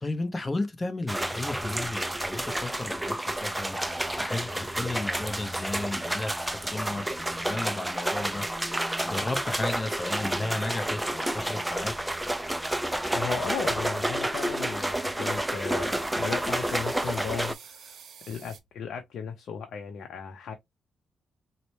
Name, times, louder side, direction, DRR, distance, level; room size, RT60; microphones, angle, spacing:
voice 1, 0.0-3.8 4.2-8.4 9.0-11.9, left 2 dB, 20° left, 0.7 m, -34 dB
sound 1, 1.1-17.5, right 1 dB, 5° right, 0.3 m, -30 dB
sound 2, 2.1-11.2, right 1 dB, 50° left, 1.2 m, -59 dB
voice 2, 13.1-18.0 18.3-20.5, left 6 dB, 75° left, 0.5 m, -36 dB
sound 3, 14.6-18.6, right 7 dB, 70° right, 0.7 m, -54 dB
4.1 x 2.1 x 3.0 m
cardioid pair, 120°, 0 cm